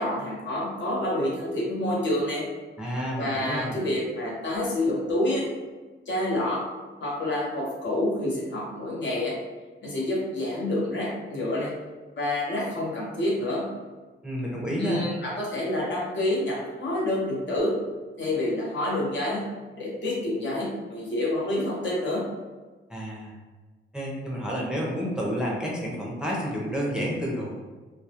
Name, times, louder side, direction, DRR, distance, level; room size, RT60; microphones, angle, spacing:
voice 1, 0.0-2.4 3.2-5.5 6.1-6.6 7.0-9.3 9.8-11.7 12.2-13.6 14.8-17.7 18.2-19.5 19.8-22.2, left 1 dB, 60° left, -5 dB, 0.8 m, -28 dB
voice 2, 2.8-3.8 14.2-15.1 22.9-23.4 23.9-27.6, equal, 5° right, -4 dB, 0.5 m, -30 dB
2.2 x 2.0 x 2.8 m, 1.3 s
cardioid pair, 85°, 21 cm